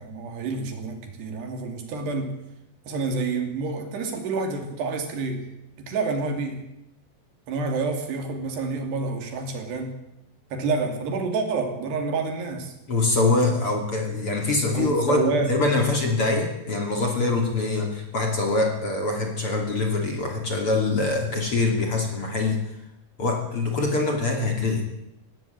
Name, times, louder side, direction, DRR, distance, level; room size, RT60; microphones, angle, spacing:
voice 1, 0.0-2.4 2.9-5.4 5.8-6.6 7.5-9.9 10.5-12.7 14.7-15.5, right 4 dB, 75° right, 5 dB, 4.8 m, -28 dB
voice 2, 12.9-15.2 15.5-22.6 23.2-24.8, left 3 dB, 35° left, 3 dB, 2.9 m, -24 dB
19.0 x 16.5 x 8.9 m, 0.87 s
omnidirectional pair, 4.9 m